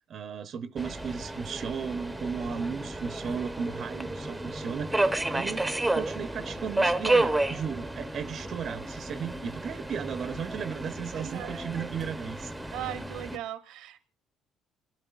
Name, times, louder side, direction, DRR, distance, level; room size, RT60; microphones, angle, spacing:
voice 1, 0.1-5.6 5.9-12.5, right 6 dB, 40° right, 0.6 m, -35 dB
Subway metro underground, 0.8-13.4, right 2 dB, 5° right, 0.7 m, -31 dB
voice 2, 11.2-11.6 12.7-14.1, right 13 dB, 80° right, 0.8 m, -38 dB
27.0 x 12.5 x 2.4 m
cardioid pair, 165°, 0 cm